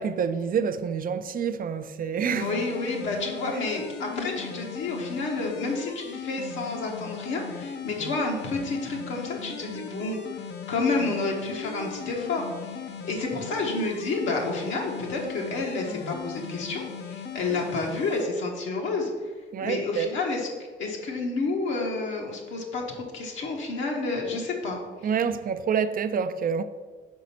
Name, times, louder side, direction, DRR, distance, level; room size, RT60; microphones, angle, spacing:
voice 1, 0.0-2.5 19.5-20.1 25.0-26.6, right 6 dB, 45° right, 0.4 m, -27 dB
voice 2, 2.3-10.4 10.7-19.1 19.6-20.5 20.8-24.8, left 3 dB, 80° left, 1.2 m, -30 dB
sound 1, 2.3-18.3, left 7 dB, 60° left, 0.6 m, -38 dB
5.2 x 4.1 x 5.7 m
cardioid pair, 90°, 20 cm